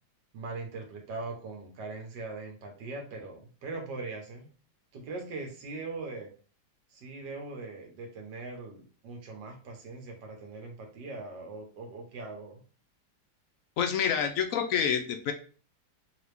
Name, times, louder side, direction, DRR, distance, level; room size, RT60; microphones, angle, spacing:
voice 1, 0.3-4.5 4.9-6.3 6.9-12.6, right 3 dB, 85° right, 2 dB, 1.7 m, -41 dB
voice 2, 13.8-15.3, left 7 dB, 70° left, 6 dB, 0.8 m, -27 dB
3.9 x 2.8 x 3.3 m, 0.39 s
omnidirectional pair, 1.8 m